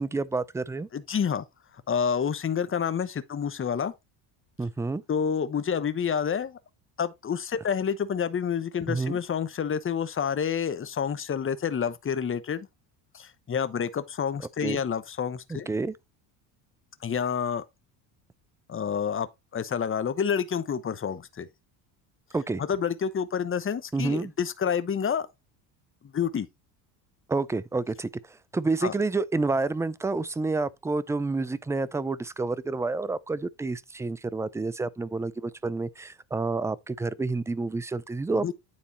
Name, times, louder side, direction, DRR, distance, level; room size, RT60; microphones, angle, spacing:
voice 1, 0.0-0.9 4.6-5.0 8.9-9.2 14.6-14.8 15.5-16.0 22.3-22.6 23.9-24.3 27.3-38.5, right 3 dB, 5° right, 0.4 m, -29 dB
voice 2, 0.9-1.4 1.9-3.9 5.1-6.6 7.0-12.7 13.1-15.7 17.0-17.6 18.7-19.3 19.5-21.5 22.6-25.3 26.1-26.5 28.8-28.9 38.3-38.5, left 7 dB, 25° left, 1.0 m, -28 dB
9.6 x 4.2 x 4.1 m
supercardioid pair, 90°, 49 cm